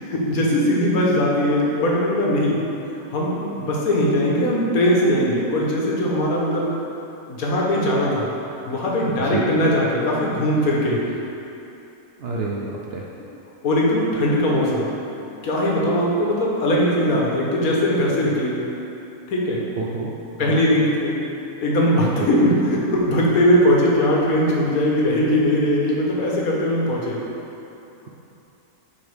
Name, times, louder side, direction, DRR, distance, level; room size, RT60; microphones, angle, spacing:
voice 1, 0.0-2.6 3.1-6.7 7.3-8.3 8.7-11.0 13.6-14.9 15.4-18.5 19.3-19.6 20.4-21.2 21.6-27.2, left 1 dB, 80° left, -3 dB, 1.5 m, -20 dB
voice 2, 12.2-13.1 19.8-20.1 20.4-20.6 22.2-22.5, right 4 dB, 60° right, -4 dB, 0.7 m, -28 dB
9.8 x 4.2 x 3.5 m, 2.9 s
omnidirectional pair, 1.5 m